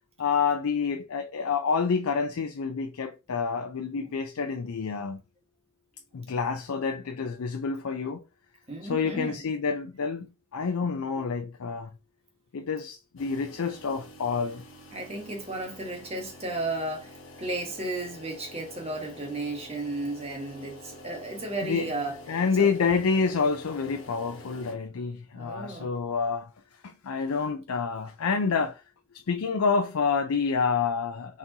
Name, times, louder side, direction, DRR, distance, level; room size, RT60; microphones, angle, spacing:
voice 1, 0.2-5.2 6.1-8.2 8.8-11.9 12.5-14.6 21.6-21.9 22.3-26.5 26.8-28.8 29.1-31.4, left 5 dB, 75° left, 0.5 m, -28 dB
voice 2, 8.7-9.4 14.9-22.7 25.3-25.9, right 2 dB, 30° right, 1.2 m, -34 dB
sound 1, 13.2-24.7, left 1 dB, 60° left, 1.2 m, -47 dB
4.2 x 3.7 x 2.7 m
head